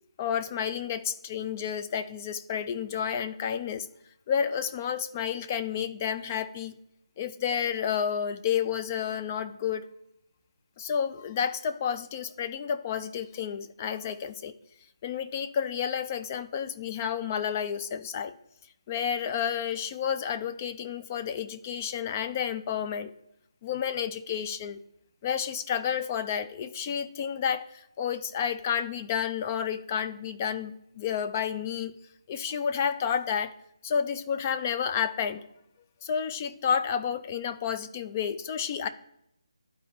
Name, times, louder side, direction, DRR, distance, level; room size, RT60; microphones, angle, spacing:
voice 1, 0.2-3.9 4.3-6.8 7.2-9.9 10.8-14.5 15.0-18.3 18.9-23.1 23.6-24.8 25.2-32.0 32.3-33.6 33.8-35.4 36.0-38.9, left 8 dB, 25° left, 11 dB, 0.3 m, -30 dB
12.0 x 4.1 x 2.9 m, 0.79 s
figure-of-eight pair, 160°, 3 cm